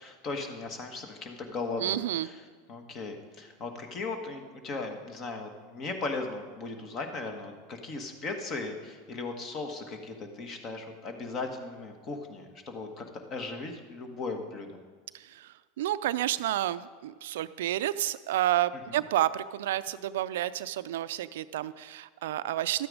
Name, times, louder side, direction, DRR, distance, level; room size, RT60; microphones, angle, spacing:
voice 1, 0.0-2.4 2.7-14.8 18.9-19.0, left 3 dB, 40° left, 5 dB, 1.6 m, -37 dB
voice 2, 1.8-2.3 15.1-22.9, right 13 dB, 75° right, 15 dB, 0.3 m, -30 dB
12.5 x 8.7 x 5.0 m, 1.5 s
hypercardioid pair, 95°, 0 cm